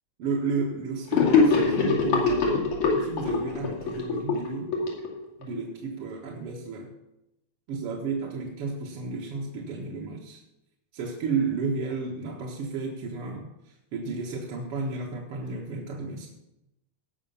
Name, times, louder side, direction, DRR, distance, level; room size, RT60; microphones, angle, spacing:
voice 1, 0.2-2.6 3.0-4.7 5.4-6.9 7.7-10.4 10.9-13.4 13.9-16.3, right 4 dB, 55° right, -3 dB, 2.2 m, -32 dB
Gurgling / Sink (filling or washing), 1.1-5.6, left 4 dB, 85° left, 3.9 m, -23 dB
18.0 x 6.2 x 5.7 m, 0.89 s
omnidirectional pair, 3.4 m